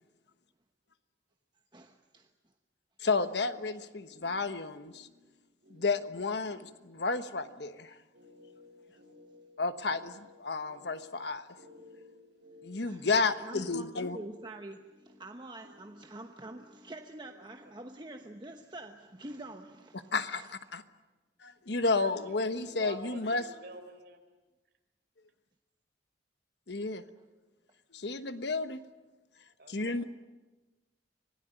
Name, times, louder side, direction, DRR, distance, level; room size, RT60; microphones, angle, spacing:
voice 1, 1.7-2.3 12.8-20.5, right 1 dB, 25° right, 4 dB, 1.0 m, -46 dB
voice 2, 3.0-5.1 5.7-8.0 9.6-11.5 12.6-14.2 20.1-20.8 21.4-23.4 26.7-27.0 27.9-28.8 29.7-30.0, left 3 dB, 65° left, 10 dB, 1.2 m, -32 dB
sound 1, 3.4-18.7, left 2 dB, 75° right, 7.7 m, -58 dB
voice 3, 22.0-24.2 29.6-30.0, right 2 dB, 60° right, 5 dB, 4.3 m, -48 dB
26.0 x 17.5 x 9.1 m, 1.2 s
head